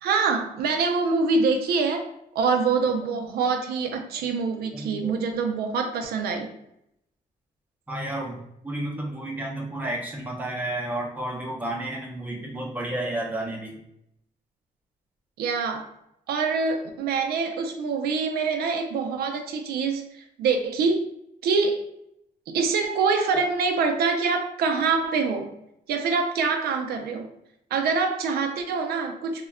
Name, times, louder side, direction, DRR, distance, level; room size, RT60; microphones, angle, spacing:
voice 1, 0.0-6.5 15.4-15.9 16.3-21.1 21.4-21.8 22.5-25.5 25.9-27.3 27.7-29.5, right 4 dB, 85° right, 5 dB, 0.4 m, -25 dB
voice 2, 4.7-5.2 7.9-8.4 8.6-13.7, right 1 dB, 10° right, -1 dB, 0.6 m, -31 dB
2.2 x 2.1 x 3.5 m, 0.78 s
cardioid pair, 140°, 16 cm